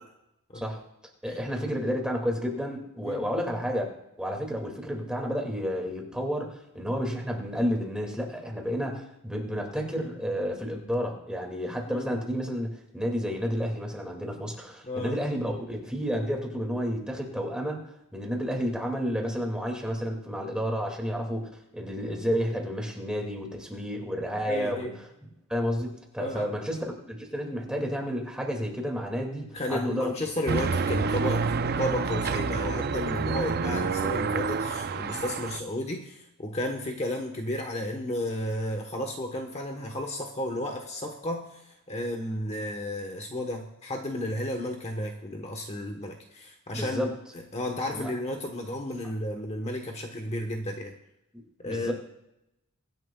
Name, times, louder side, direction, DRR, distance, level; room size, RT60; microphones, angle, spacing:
voice 1, 1.2-3.9 4.2-17.8 18.1-24.9 25.5-30.1 46.7-47.1 47.9-48.1 51.3-51.9, equal, 5° right, 1 dB, 2.2 m, -31 dB
voice 2, 11.9-12.2 14.8-15.2 24.5-24.9 26.2-26.5 29.5-31.5 31.8-50.9 51.6-51.9, left 1 dB, 30° left, 3 dB, 1.1 m, -33 dB
sound 1, 30.5-35.6, right 4 dB, 45° right, 0.5 m, -28 dB
24.0 x 11.0 x 2.3 m, 0.85 s
head